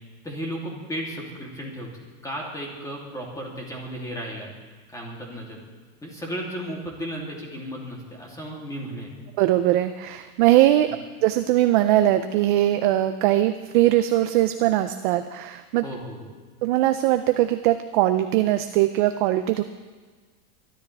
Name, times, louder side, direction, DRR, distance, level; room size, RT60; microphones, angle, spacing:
voice 1, 0.2-1.9 2.2-4.5 4.9-5.6 6.0-9.1 10.8-10.9 15.8-16.3, equal, 5° left, -2 dB, 2.8 m, -34 dB
voice 2, 9.4-10.9 11.2-15.8 16.6-19.6, right 14 dB, 35° right, 9 dB, 0.4 m, -21 dB
23.5 x 12.5 x 3.4 m, 1.4 s
supercardioid pair, 155°, 45 cm